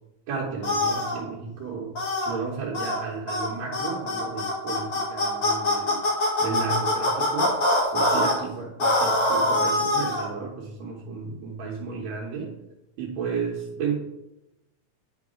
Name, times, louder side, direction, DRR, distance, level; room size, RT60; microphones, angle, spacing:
voice 1, 0.3-6.0 6.4-7.6 7.9-12.5 13.0-14.0, right 5 dB, 75° right, -3 dB, 2.3 m, -33 dB
sound 1, 0.6-1.2 2.0-2.3 2.7-3.0 3.3-3.5 3.7-8.3 8.8-10.3, left 1 dB, 50° left, 2.7 m, -23 dB
10.5 x 4.7 x 3.6 m, 0.90 s
omnidirectional pair, 3.3 m